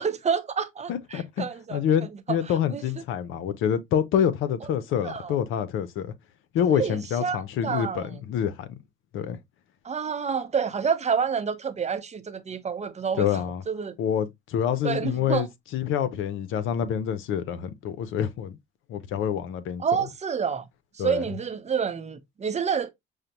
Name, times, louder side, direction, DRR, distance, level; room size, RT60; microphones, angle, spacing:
voice 1, 0.0-1.8 2.3-2.4 2.7-2.8 5.0-5.3 6.8-8.2 9.8-14.0 14.8-15.5 19.8-20.6 21.0-22.9, right 6 dB, 35° right, 0.7 m, -28 dB
voice 2, 0.9-6.1 6.5-8.8 9.1-9.4 13.2-13.6 14.0-15.5 15.7-18.6 18.9-19.8 21.0-21.2, left 9 dB, 85° left, 0.6 m, -27 dB
6.3 x 2.1 x 2.8 m
cardioid pair, 90°, 20 cm